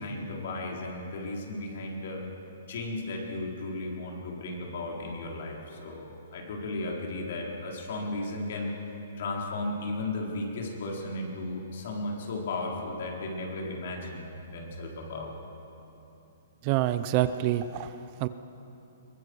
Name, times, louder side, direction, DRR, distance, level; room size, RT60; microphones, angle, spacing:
voice 1, 0.0-2.2 2.7-8.8 9.2-15.3, left 2 dB, 55° left, -1 dB, 4.3 m, -35 dB
voice 2, 16.6-17.9 18.2-18.3, right 13 dB, 30° right, 12 dB, 0.6 m, -26 dB
22.5 x 20.5 x 6.4 m, 2.9 s
hypercardioid pair, 165°, 0 cm